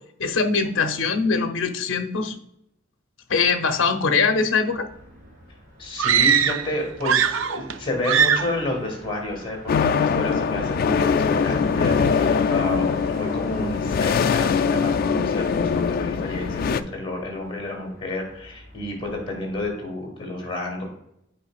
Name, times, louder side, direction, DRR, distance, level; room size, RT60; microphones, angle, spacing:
voice 1, 0.2-2.3 3.3-4.9, left 4 dB, 65° left, 6 dB, 0.7 m, -22 dB
Motor vehicle (road), 4.7-19.7, equal, 40° right, 2.5 m, -46 dB
voice 2, 5.8-20.8, left 2 dB, 25° left, 0 dB, 2.2 m, -30 dB
sound 1, 6.0-6.7 7.0-7.8 8.0-8.6, right 8 dB, 65° right, 0.4 m, -20 dB
sound 2, 9.7-16.8, left 6 dB, 45° left, 0.3 m, -22 dB
8.9 x 4.9 x 2.4 m, 0.77 s
head